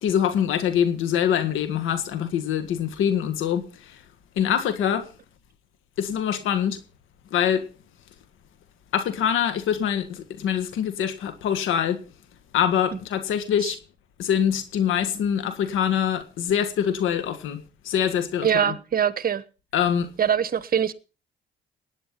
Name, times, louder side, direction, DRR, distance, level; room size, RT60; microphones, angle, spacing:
voice 1, 0.0-4.0 4.3-5.1 6.0-6.8 7.3-7.7 8.9-12.0 12.5-13.8 14.2-18.8 19.7-20.1, left 9 dB, 85° left, 1.7 m, -24 dB
voice 2, 18.4-19.4 20.2-20.9, right 8 dB, 45° right, 1.2 m, -23 dB
18.0 x 9.9 x 5.7 m
cardioid pair, 90°, 20 cm